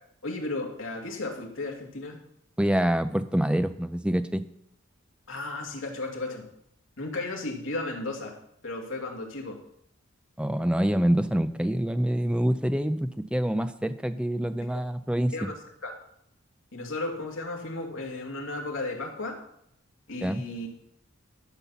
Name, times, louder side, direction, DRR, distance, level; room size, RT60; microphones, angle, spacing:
voice 1, 0.2-2.2 5.3-6.5 7.0-8.4 8.6-9.6 14.6-14.7 15.3-15.5 15.8-15.9 16.7-19.4 20.1-20.7, left 2 dB, 75° left, 0 dB, 2.4 m, -34 dB
voice 2, 2.6-4.4 10.4-15.3 20.2-20.4, equal, 5° right, 11 dB, 0.5 m, -26 dB
12.5 x 5.8 x 7.0 m, 0.74 s
head